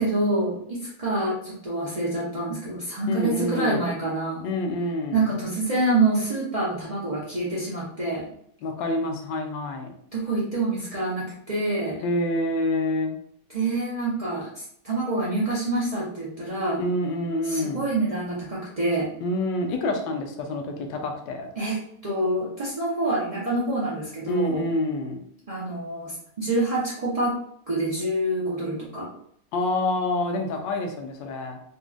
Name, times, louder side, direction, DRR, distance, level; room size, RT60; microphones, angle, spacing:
voice 1, 0.0-4.5 5.1-8.3 10.1-12.0 13.5-16.8 17.4-19.1 21.6-24.7 25.5-27.4 27.7-29.1, right 2 dB, 60° right, -8 dB, 0.4 m, -26 dB
voice 2, 3.1-3.8 4.4-5.2 8.6-9.9 12.0-13.2 16.8-17.9 19.2-21.5 24.3-25.2 29.5-31.6, left 1 dB, 90° left, 4 dB, 1.3 m, -27 dB
3.9 x 2.9 x 2.4 m, 0.67 s
omnidirectional pair, 1.9 m